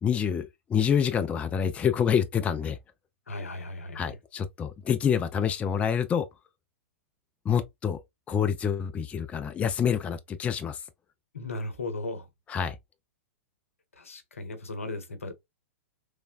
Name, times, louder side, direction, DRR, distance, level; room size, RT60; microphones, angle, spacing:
voice 1, 0.0-2.8 3.9-6.3 7.5-8.0 8.3-10.8 12.5-12.8, left 8 dB, 15° left, 0.3 m, -27 dB
voice 2, 3.3-4.1 11.3-12.3 14.0-15.3, left 2 dB, 80° left, 0.7 m, -36 dB
3.3 x 2.1 x 2.3 m
figure-of-eight pair, 105°, 7 cm